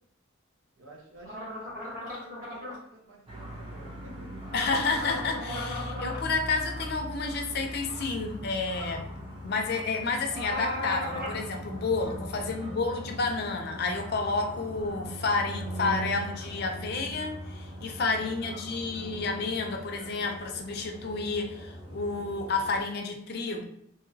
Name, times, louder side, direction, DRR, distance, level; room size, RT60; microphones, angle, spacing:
voice 1, 0.8-4.5 12.4-12.8 18.1-18.9, right 1 dB, 90° right, -1 dB, 0.8 m, -51 dB
sound 1, 1.2-2.8 4.4-6.2 10.3-11.4, left 1 dB, 40° right, 1.2 m, -37 dB
sound 2, 3.3-22.8, equal, 25° right, 0.6 m, -40 dB
voice 2, 4.5-9.1 9.4-23.6, left 4 dB, 50° left, 4 dB, 0.4 m, -30 dB
2.8 x 2.8 x 2.6 m, 0.71 s
head